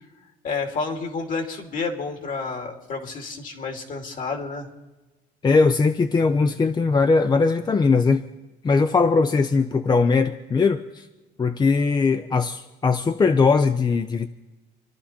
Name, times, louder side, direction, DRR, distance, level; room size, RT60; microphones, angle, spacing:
voice 1, 0.4-4.7, left 4 dB, 50° left, 2.6 m, -30 dB
voice 2, 5.4-8.2 8.6-11.1 11.4-14.3, left 4 dB, 25° left, 0.6 m, -20 dB
27.5 x 11.5 x 4.4 m
cardioid pair, 110°, 17 cm